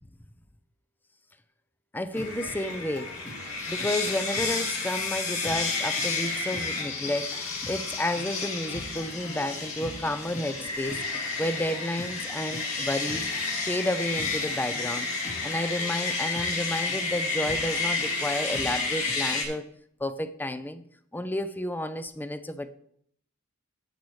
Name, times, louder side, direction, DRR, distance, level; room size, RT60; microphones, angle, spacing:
voice 1, 1.9-3.1 3.7-13.3 13.6-15.1 15.4-19.7 20.0-20.8 21.1-22.7, left 1 dB, 10° left, 0.5 m, -31 dB
sound 1, 2.1-19.4, left 3 dB, 75° left, 2.4 m, -31 dB
sound 2, 2.1-19.6, left 1 dB, 35° left, 1.8 m, -44 dB
10.5 x 8.5 x 3.2 m
head